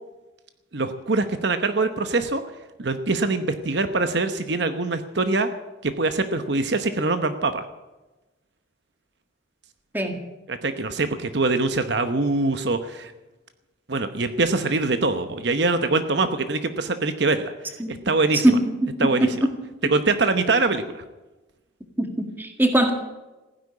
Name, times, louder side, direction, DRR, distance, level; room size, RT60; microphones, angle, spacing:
voice 1, 0.7-2.4 2.8-5.5 5.8-7.6 10.5-13.1 13.9-18.4 19.0-19.3 19.9-21.0, right 3 dB, 55° right, 9 dB, 0.9 m, -23 dB
voice 2, 18.3-19.5 22.0-22.9, right 1 dB, 10° right, 4 dB, 1.9 m, -21 dB
15.5 x 10.5 x 8.5 m, 1.1 s
head